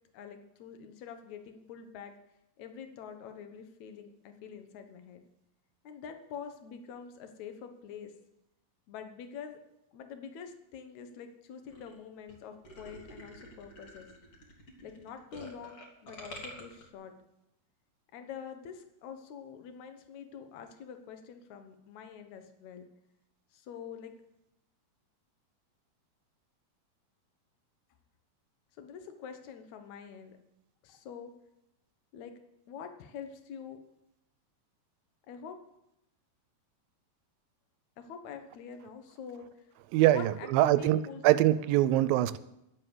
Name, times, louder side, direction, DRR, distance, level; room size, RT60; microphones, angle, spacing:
voice 1, 0.1-2.1 2.6-5.2 5.8-8.1 8.9-9.6 9.9-14.1 14.8-17.2 18.1-22.9 23.5-24.1 28.8-30.4 30.8-31.3 32.1-32.4 32.7-33.8 35.3-35.6 38.0-39.7 40.1-41.2, left 7 dB, 65° left, 7 dB, 2.2 m, -46 dB
sound 1, 11.7-11.9 12.3-12.4 12.6-16.8, equal, 45° left, 3.0 m, -48 dB
voice 2, 39.9-42.4, right 14 dB, 85° right, 15 dB, 2.4 m, -24 dB
12.0 x 7.8 x 7.9 m, 0.84 s
omnidirectional pair, 4.1 m